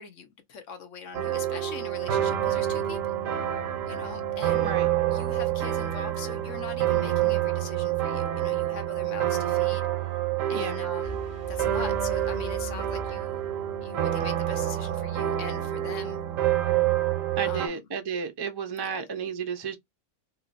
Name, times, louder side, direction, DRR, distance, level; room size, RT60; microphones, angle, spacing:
voice 1, 0.0-3.2 3.8-4.8 5.1-9.9 10.5-11.2 11.5-13.4 13.8-16.2 17.4-17.8 18.8-19.1, left 6 dB, 70° left, 1.2 m, -42 dB
sound 1, 1.1-17.7, right 12 dB, 85° right, 1.1 m, -27 dB
sound 2, 11.0-13.9, right 1 dB, 30° left, 0.9 m, -40 dB
voice 2, 17.4-19.8, right 6 dB, 40° right, 0.3 m, -32 dB
3.0 x 3.0 x 2.5 m
omnidirectional pair, 1.4 m